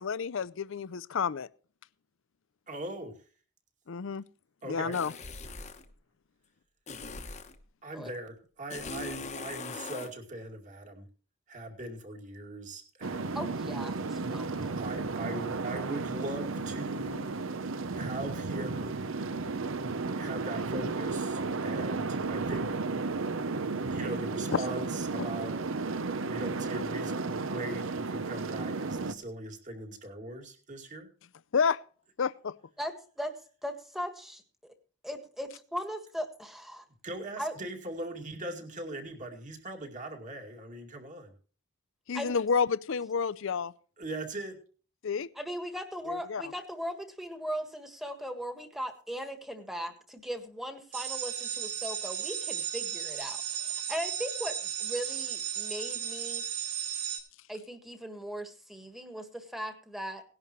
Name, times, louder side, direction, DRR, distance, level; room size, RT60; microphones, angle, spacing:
voice 1, 0.0-1.5 3.9-4.2 4.7-5.1 25.2-25.3 31.5-31.8 32.2-32.5 42.1-43.7 45.0-45.3 46.1-46.4, left 6 dB, 60° left, 0.5 m, -30 dB
voice 2, 2.7-3.1 4.6-5.0 7.8-11.1 11.5-13.4 14.7-18.9 20.2-22.7 23.5-25.5 26.2-31.1 37.0-41.3 44.0-44.6, right 1 dB, 35° right, 2.4 m, -40 dB
sound 1, 4.9-5.9 6.9-7.6 8.7-10.1, left 3 dB, 30° left, 1.0 m, -40 dB
sound 2, 13.0-29.1, right 3 dB, 60° right, 0.7 m, -33 dB
voice 3, 13.3-14.8 32.8-33.3 33.6-34.7 35.0-36.8 37.4-37.5 42.1-42.4 45.3-56.4 57.5-60.2, equal, ahead, 1.6 m, -38 dB
sound 3, 50.9-57.2, right 10 dB, 85° right, 3.9 m, -35 dB
18.5 x 11.0 x 3.1 m
head